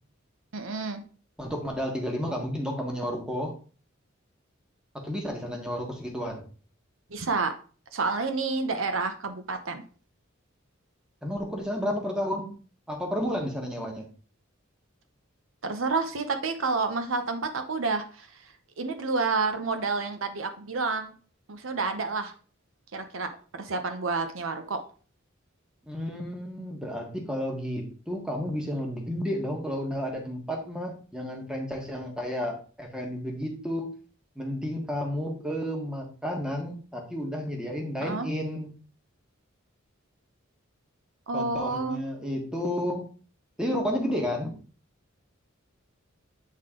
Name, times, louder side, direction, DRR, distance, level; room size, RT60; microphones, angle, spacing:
voice 1, 0.5-1.0 7.1-7.5 7.9-9.8 15.6-21.1 21.5-22.3 22.9-24.8 38.0-38.3 41.3-42.0, right 4 dB, 75° right, 7 dB, 0.8 m, -29 dB
voice 2, 1.4-3.5 4.9-6.4 11.2-12.5 12.9-14.0 25.9-33.9 34.4-38.7 41.3-43.1 43.6-44.5, equal, 5° right, 1 dB, 1.4 m, -31 dB
8.4 x 3.8 x 3.7 m, 0.39 s
head